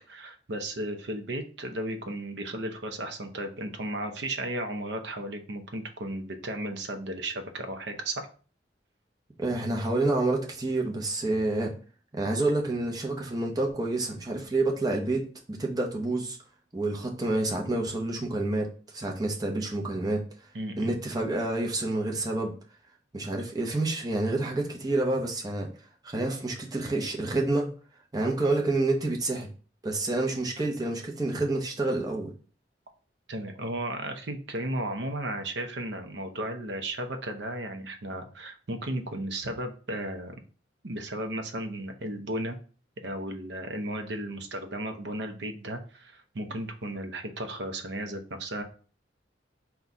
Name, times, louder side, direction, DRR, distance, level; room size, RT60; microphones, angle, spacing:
voice 1, 0.0-8.3 20.5-21.0 33.3-40.4 40.8-42.6 43.0-48.6, right 1 dB, 70° right, 6 dB, 0.7 m, -34 dB
voice 2, 9.4-11.7 12.1-16.4 16.7-18.7 18.9-20.2 20.8-22.5 23.1-25.7 26.0-27.7 28.1-29.5 29.8-32.3, right 2 dB, 20° right, 0 dB, 0.7 m, -28 dB
4.0 x 2.3 x 4.6 m, 0.40 s
head